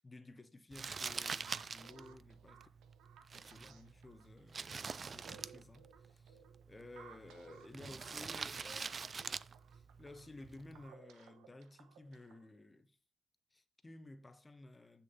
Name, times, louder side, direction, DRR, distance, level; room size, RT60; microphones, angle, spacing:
voice 1, 0.0-2.6 3.3-9.3 9.7-13.0 13.5-15.0, left 2 dB, 20° left, 1.0 m, -55 dB
Crumpling crinkling, 0.7-10.9, right 5 dB, 40° right, 0.4 m, -46 dB
sound 1, 1.4-12.5, right 7 dB, 90° right, 1.0 m, -60 dB
7.4 x 6.5 x 5.4 m
cardioid pair, 90°, 0 cm